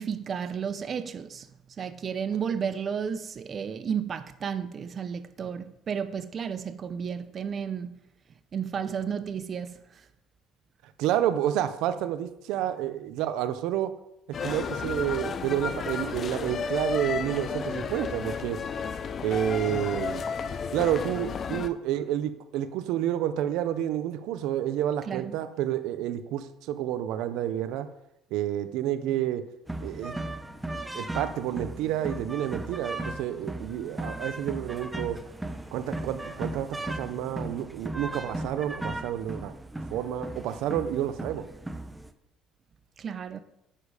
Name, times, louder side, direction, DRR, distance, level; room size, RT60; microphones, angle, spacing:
voice 1, 0.0-1.5 1.8-8.0 8.5-9.8 25.1-25.4 43.0-43.4, right 7 dB, 45° right, 0.8 m, -32 dB
voice 2, 10.8-13.9 14.4-18.6 19.2-20.2 20.7-27.9 28.3-29.4 29.8-30.1 30.9-35.2 35.7-39.5 39.9-41.5, right 11 dB, 75° right, 0.8 m, -29 dB
sound 1, 14.3-21.7, left 5 dB, 45° left, 0.9 m, -32 dB
sound 2, 29.7-42.1, right 1 dB, 10° right, 1.0 m, -37 dB
10.0 x 8.6 x 5.1 m
supercardioid pair, 90°, 0 cm